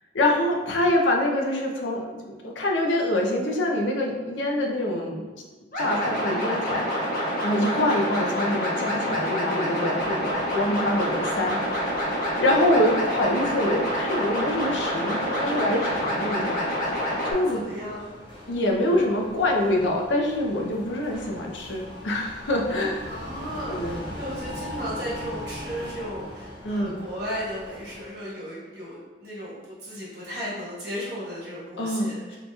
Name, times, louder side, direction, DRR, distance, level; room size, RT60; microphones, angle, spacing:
voice 1, 0.1-5.2 5.8-6.9 7.4-12.0 12.4-16.6 17.2-17.6 18.5-23.1 23.7-24.0 26.6-26.9 31.8-32.4, left 1 dB, 75° left, 0 dB, 0.5 m, -25 dB
sound 1, 5.7-17.3, equal, 50° left, 0.9 m, -27 dB
sound 2, 10.0-28.1, left 1 dB, 25° left, 0.5 m, -41 dB
voice 2, 15.2-15.6 17.5-18.0 23.1-32.4, equal, 55° right, -7 dB, 1.3 m, -35 dB
4.1 x 2.8 x 2.3 m, 1.3 s
head